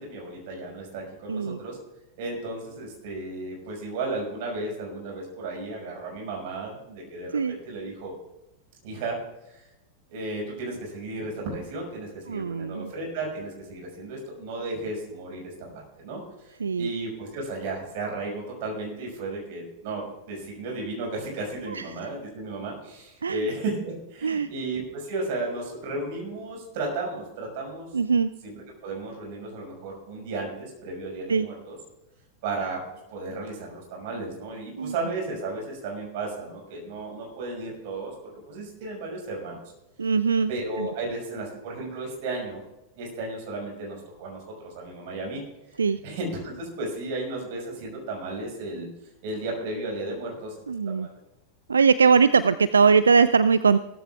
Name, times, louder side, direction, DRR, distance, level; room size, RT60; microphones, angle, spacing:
voice 1, 0.0-1.8 2.2-8.1 8.8-9.2 9.5-9.7 10.1-27.9 28.4-31.8 32.4-32.8 33.1-38.1 38.5-39.6 40.5-42.6 43.0-45.4 46.0-48.9 49.2-50.5 50.9-51.2, right 2 dB, 50° right, -1 dB, 5.4 m, -34 dB
voice 2, 1.3-1.6 7.3-7.6 12.3-12.9 16.6-16.9 21.7-21.8 23.2-23.5 24.2-24.5 27.9-28.3 31.3-31.5 34.8-34.9 40.0-40.5 40.8-40.9 45.8-46.0 50.7-51.1 51.7-53.8, right 5 dB, 75° right, 15 dB, 0.3 m, -21 dB
17.0 x 14.0 x 2.4 m, 0.95 s
figure-of-eight pair, 90°, 0 cm